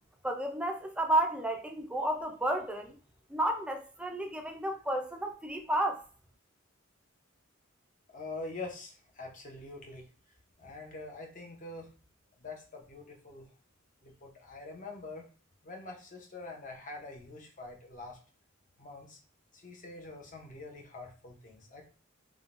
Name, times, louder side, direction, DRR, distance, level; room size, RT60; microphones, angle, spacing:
voice 1, 0.2-2.9 3.3-6.0, right 1 dB, 5° right, 0.3 m, -31 dB
voice 2, 8.1-10.0 10.6-11.9 12.4-13.5 14.0-15.3 15.6-18.2 18.8-19.2 19.5-21.9, left 3 dB, 40° left, 0.7 m, -45 dB
3.5 x 2.2 x 2.4 m
head